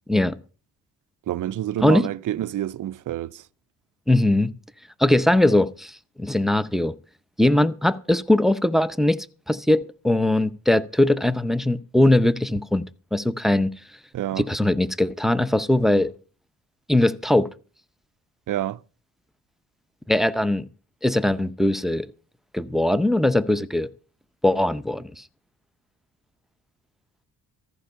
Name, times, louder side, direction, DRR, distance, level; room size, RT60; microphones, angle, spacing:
voice 1, 1.3-3.4 14.1-14.4 18.5-18.8, right 12 dB, 45° right, 0.5 m, -28 dB
voice 2, 4.1-4.5 5.0-6.9 7.4-12.8 13.1-13.7 14.4-16.1 16.9-17.5 20.1-20.7 21.0-22.1 22.5-23.9 24.4-25.2, left 1 dB, ahead, 0.6 m, -20 dB
14.5 x 5.4 x 6.8 m
supercardioid pair, 55°, 44 cm